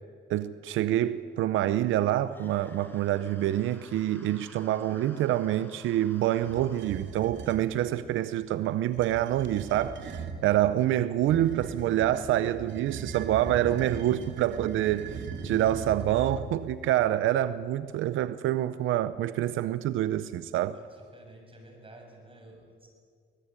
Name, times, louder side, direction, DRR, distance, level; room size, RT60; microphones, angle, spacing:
voice 1, 0.3-20.8, right 12 dB, 85° right, 0.7 m, -27 dB
sound 1, 2.3-6.9, left 1 dB, 10° left, 4.4 m, -54 dB
sound 2, 6.4-7.7 8.8-10.4 11.2-16.7, right 5 dB, 65° right, 2.6 m, -39 dB
voice 2, 20.7-22.9, right 1 dB, 25° right, 7.3 m, -51 dB
24.0 x 19.5 x 8.9 m
cardioid pair, 90°, 20 cm